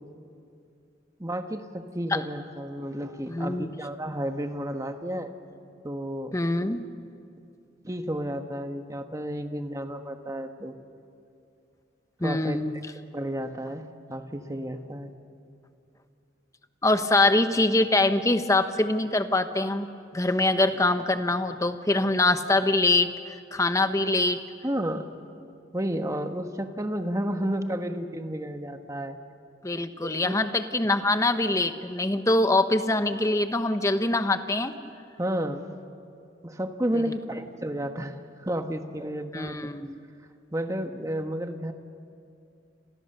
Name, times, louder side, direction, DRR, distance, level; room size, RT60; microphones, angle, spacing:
voice 1, 1.2-5.3 5.8-6.3 7.8-10.8 12.2-12.6 13.1-15.1 24.6-25.1 25.7-29.2 30.0-30.4 35.2-35.7 36.4-39.6 40.5-41.7, right 1 dB, 20° right, 6 dB, 1.3 m, -31 dB
voice 2, 3.3-3.7 6.3-6.8 12.2-12.7 16.8-24.4 29.6-34.7 36.9-37.0 39.3-40.0, left 2 dB, 15° left, 9 dB, 1.1 m, -24 dB
29.5 x 26.5 x 6.8 m, 2.5 s
head